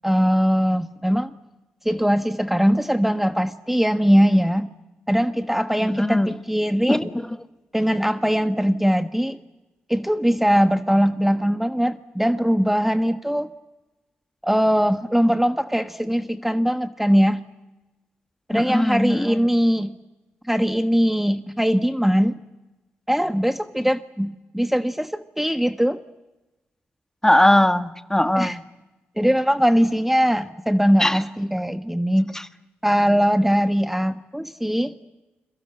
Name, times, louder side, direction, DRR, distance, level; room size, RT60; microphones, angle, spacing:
voice 1, 0.0-1.3 1.8-4.7 5.1-7.1 7.7-9.4 9.9-13.5 14.4-17.4 18.5-19.9 20.5-22.4 23.1-26.0 28.3-28.6 29.2-32.3 32.8-34.9, equal, 5° right, 9 dB, 1.3 m, -21 dB
voice 2, 5.8-6.3 6.9-7.4 18.5-19.4 27.2-28.6 31.0-31.2 32.3-32.4, left 1 dB, 10° left, 10 dB, 1.5 m, -20 dB
30.0 x 23.0 x 7.9 m, 1.1 s
supercardioid pair, 45°, 4 cm